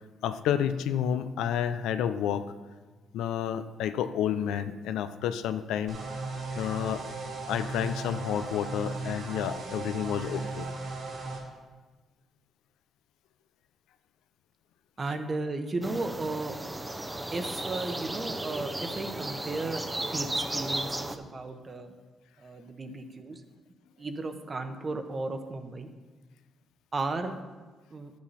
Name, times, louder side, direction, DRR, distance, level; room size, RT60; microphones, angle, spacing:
voice 1, 0.2-2.5 3.1-6.0 6.6-7.0 7.5-10.7 15.0-15.1, left 9 dB, 90° left, 10 dB, 0.5 m, -30 dB
sound 1, 5.9-11.4, right 3 dB, 60° right, 3.0 m, -37 dB
voice 2, 15.0-16.6 17.3-21.9 22.4-23.4 24.0-25.9 26.9-27.4 27.9-28.1, right 3 dB, 35° right, 7 dB, 1.1 m, -35 dB
sound 2, 15.8-21.2, right 1 dB, 10° right, 0.7 m, -34 dB
11.5 x 8.5 x 4.2 m, 1.3 s
cardioid pair, 90°, 0 cm